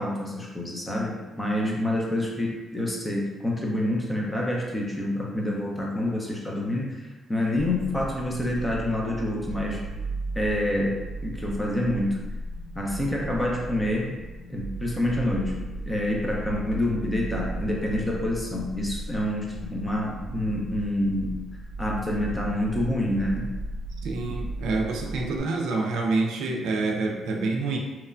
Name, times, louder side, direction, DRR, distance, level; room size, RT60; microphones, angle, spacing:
voice 1, 0.0-9.8 10.4-12.2 12.7-14.2 14.5-15.6 15.9-21.4 21.8-23.5, left 1 dB, 10° left, -2 dB, 0.6 m, -27 dB
sound 1, 7.8-25.4, right 2 dB, 65° right, 0.7 m, -36 dB
voice 2, 24.0-27.8, right 3 dB, 85° right, 1 dB, 0.3 m, -27 dB
2.9 x 2.1 x 2.4 m, 1.2 s
cardioid pair, 90°, 0 cm